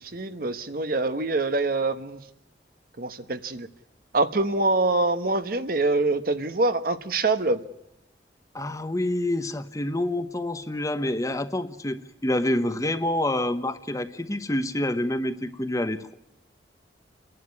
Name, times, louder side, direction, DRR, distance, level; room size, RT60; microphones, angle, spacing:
voice 1, 0.0-2.2 3.0-3.7 4.1-7.6, right 2 dB, 55° right, 10 dB, 1.1 m, -25 dB
voice 2, 8.5-16.1, left 1 dB, 20° left, 10 dB, 0.9 m, -27 dB
29.5 x 11.0 x 9.6 m, 0.85 s
head